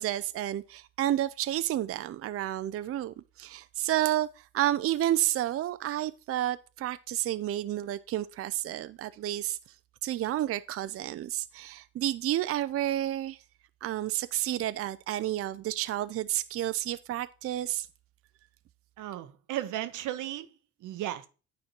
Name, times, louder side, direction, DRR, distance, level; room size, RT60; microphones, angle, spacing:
voice 1, 0.0-9.6 10.0-13.4 13.8-17.9, right 13 dB, 50° right, 0.4 m, -30 dB
voice 2, 19.0-20.5 20.8-21.3, right 13 dB, 85° right, 0.9 m, -35 dB
9.6 x 4.4 x 4.4 m
cardioid pair, 90°, 30 cm